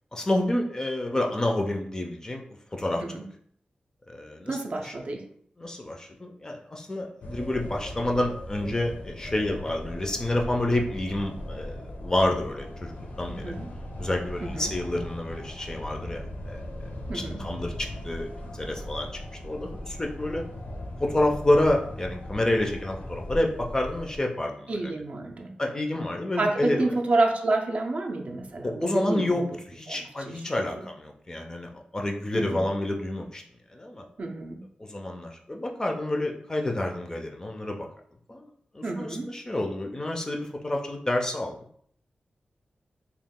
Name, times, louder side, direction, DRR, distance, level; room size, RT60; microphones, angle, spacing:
voice 1, 0.1-3.0 4.1-4.6 4.8-4.9 5.6-13.6 14.0-19.1 19.4-20.4 21.0-24.9 25.6-26.9 28.6-29.4 29.7-33.4 33.7-34.0 34.8-37.9 38.3-38.5 38.7-41.6, left 1 dB, 20° left, 2 dB, 0.4 m, -29 dB
voice 2, 4.5-5.3 13.3-13.7 14.4-14.7 17.1-17.4 24.7-25.6 26.4-29.4 29.9-30.0 30.3-30.4 30.7-30.8 32.3-32.7 34.2-34.6 38.8-39.3, right 2 dB, 50° right, 3 dB, 0.4 m, -29 dB
sound 1, 7.2-24.2, left 1 dB, 80° left, 0.6 m, -38 dB
2.9 x 2.3 x 3.5 m, 0.63 s
wide cardioid pair, 145°, 3 cm